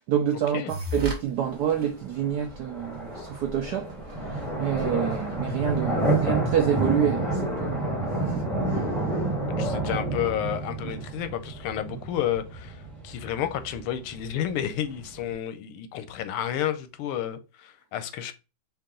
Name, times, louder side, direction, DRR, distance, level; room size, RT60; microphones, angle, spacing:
voice 1, 0.0-9.3 10.8-11.0, right 9 dB, 75° right, 0.9 m, -28 dB
sound 1, 0.7-1.2 1.7-1.8 2.5-2.6 2.9-3.0 3.2-6.9, right 2 dB, 30° right, 1.2 m, -37 dB
sound 2, 1.4-15.3, right 2 dB, ahead, 0.7 m, -30 dB
voice 2, 9.5-18.3, left 10 dB, 90° left, 1.5 m, -31 dB
4.7 x 2.8 x 3.7 m
omnidirectional pair, 2.4 m